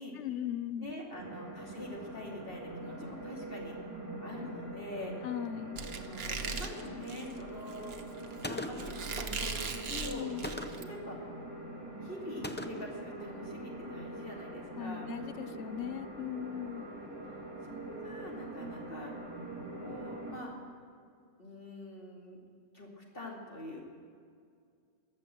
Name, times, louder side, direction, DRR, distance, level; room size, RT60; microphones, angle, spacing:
voice 1, 0.1-0.9 5.2-5.8 9.9-10.5 14.8-16.9, left 10 dB, 80° left, 13 dB, 1.0 m, -38 dB
voice 2, 0.8-3.8 4.2-5.2 5.9-7.9 8.5-10.3 10.8-11.2 12.0-15.1 16.9-19.1 19.8-20.5 21.4-22.4 22.7-23.8, left 1 dB, 50° left, -2 dB, 2.9 m, -45 dB
sound 1, 1.1-20.4, right 1 dB, 15° right, 2.5 m, -44 dB
Squeak, 5.8-10.8, right 5 dB, 60° right, 1.2 m, -39 dB
Gunshot gunfire, 8.4-9.0 10.4-11.0 12.4-13.0, left 1 dB, 15° left, 0.3 m, -40 dB
21.5 x 7.5 x 7.6 m, 2.2 s
omnidirectional pair, 1.2 m